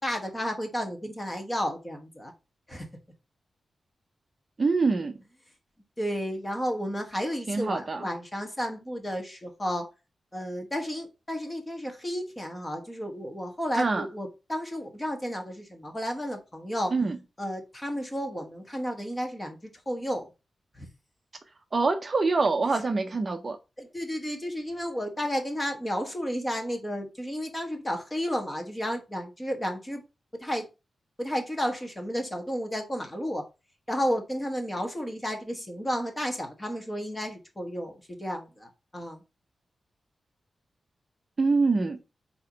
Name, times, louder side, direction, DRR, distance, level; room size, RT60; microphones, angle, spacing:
voice 1, 0.0-2.3 2.7-2.9 6.0-9.9 10.3-16.9 17.4-20.3 20.7-20.9 22.7-22.8 23.8-30.0 30.4-30.7 31.2-33.4 33.9-39.2, equal, 15° left, 1.3 m, -32 dB
voice 2, 4.6-5.1 7.5-8.1 13.8-14.1 16.9-17.2 21.7-23.6 41.4-42.0, right 3 dB, 30° right, 0.6 m, -25 dB
7.7 x 2.9 x 5.1 m
wide cardioid pair, 170°, 0 cm